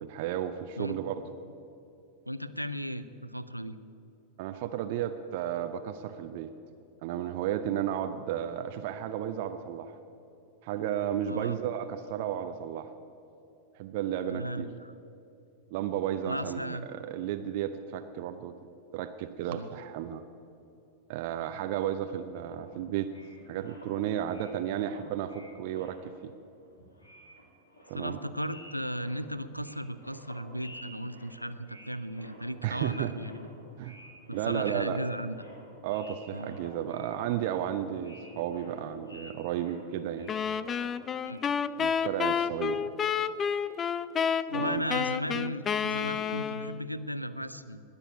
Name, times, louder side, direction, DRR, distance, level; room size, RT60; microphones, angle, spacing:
voice 1, 0.0-1.2 4.4-6.5 7.0-9.9 10.6-12.9 13.8-14.7 15.7-18.5 18.9-20.2 21.1-23.1 23.5-26.3 27.9-28.2 32.6-33.1 33.8-33.9 34.3-35.0 35.8-40.3 41.8-42.8 44.5-44.8, right 10 dB, 50° right, 9 dB, 0.6 m, -33 dB
voice 2, 2.3-3.8 11.3-11.6 14.2-14.9 16.3-16.9 19.5-19.7 27.9-33.5 34.3-35.4 36.3-36.6 41.2-41.4 44.5-47.8, equal, 90° right, 12 dB, 0.5 m, -36 dB
sound 1, 22.4-26.3 26.6-41.3, equal, 80° left, 2.7 m, -52 dB
sound 2, 40.3-46.9, left 7 dB, 25° left, 0.4 m, -30 dB
20.0 x 6.8 x 8.3 m, 2.7 s
figure-of-eight pair, 90°, 0 cm